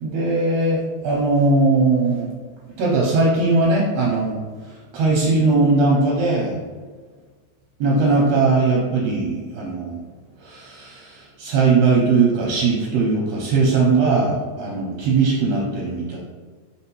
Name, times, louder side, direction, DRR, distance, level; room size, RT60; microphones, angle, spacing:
voice 1, 0.0-2.3 2.8-4.4 4.9-6.6 7.8-10.0 10.4-16.2, right 3 dB, 75° right, -3 dB, 1.7 m, -19 dB
4.4 x 3.5 x 2.9 m, 1.5 s
omnidirectional pair, 3.5 m